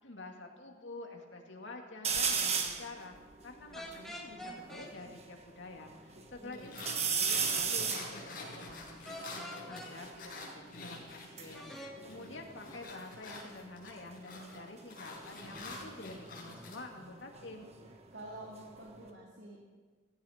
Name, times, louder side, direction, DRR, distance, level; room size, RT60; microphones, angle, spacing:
voice 1, 0.0-3.2 3.4-17.7, left 2 dB, 75° left, 2 dB, 2.4 m, -48 dB
sound 1, 2.0-2.9 3.4-3.5 3.7-5.3 5.8-6.4 6.8-10.2 11.1-13.0 13.3-13.8 15.3-18.0 18.3-19.1, right 6 dB, 35° right, 1.4 m, -36 dB
sound 2, 3.7-4.9 9.0-9.9 11.5-11.9, equal, ahead, 2.0 m, -45 dB
voice 2, 6.1-6.9 12.0-12.3 18.1-19.6, right 1 dB, 70° right, -2 dB, 2.3 m, -49 dB
sound 3, 6.5-11.8 12.1-16.8, left 2 dB, 50° left, 5.3 m, -47 dB
16.5 x 16.0 x 5.2 m, 1.4 s
head